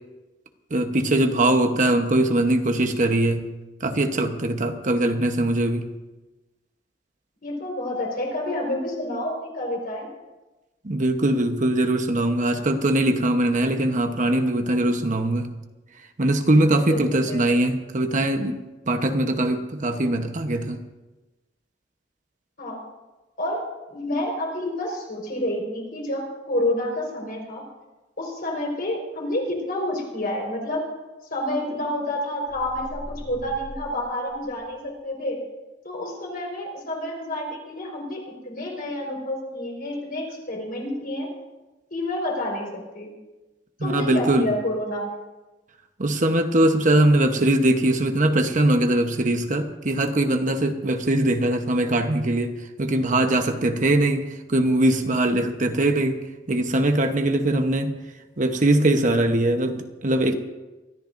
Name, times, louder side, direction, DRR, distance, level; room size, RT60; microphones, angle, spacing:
voice 1, 0.7-3.5 3.8-5.9 10.8-15.5 16.2-18.6 18.9-20.8 43.8-44.5 46.0-56.2 56.5-57.9 58.4-60.3, right 1 dB, 45° right, 6 dB, 1.0 m, -21 dB
voice 2, 7.4-10.1 16.9-17.6 22.6-22.8 23.4-23.6 23.9-27.6 28.2-30.9 31.3-35.4 35.8-41.3 41.9-43.1 43.8-45.2, left 1 dB, 55° left, 0 dB, 4.7 m, -29 dB
sound 1, 32.5-34.9, equal, 85° left, 3.4 m, -41 dB
24.5 x 13.5 x 2.6 m, 1.1 s
head